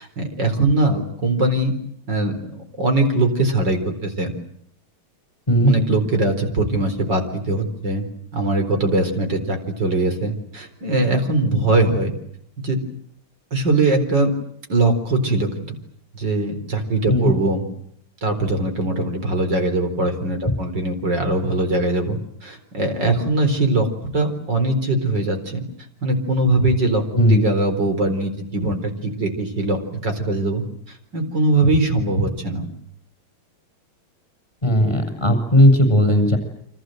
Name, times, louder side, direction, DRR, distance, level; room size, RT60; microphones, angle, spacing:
voice 1, 0.0-1.7 2.1-2.3 2.8-4.3 5.6-8.1 8.3-12.1 12.6-12.8 13.5-14.3 14.7-15.8 16.1-17.7 18.2-25.6 26.0-32.7, right 2 dB, 55° right, 6 dB, 4.8 m, -21 dB
voice 2, 5.5-5.8 17.1-17.4 20.5-20.6 27.1-27.4 34.6-36.4, equal, 15° left, 7 dB, 7.2 m, -16 dB
29.5 x 25.5 x 7.9 m, 0.70 s
omnidirectional pair, 2.3 m